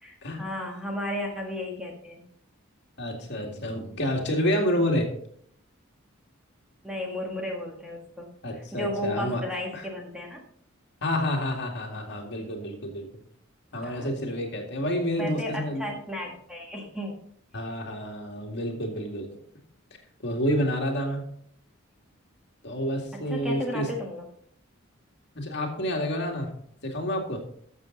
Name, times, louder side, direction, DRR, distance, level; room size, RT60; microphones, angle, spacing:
voice 1, 0.0-2.2 6.8-8.3 8.6-10.4 13.8-14.1 15.2-17.2 23.1-24.3, left 1 dB, 5° right, 0 dB, 1.6 m, -34 dB
voice 2, 3.0-5.1 8.4-9.4 9.7-9.8 11.0-13.1 13.7-15.8 17.5-19.4 20.2-21.3 22.6-23.9 25.3-26.5 26.8-27.4, equal, 55° left, 1 dB, 2.2 m, -29 dB
12.5 x 7.1 x 3.9 m, 0.64 s
head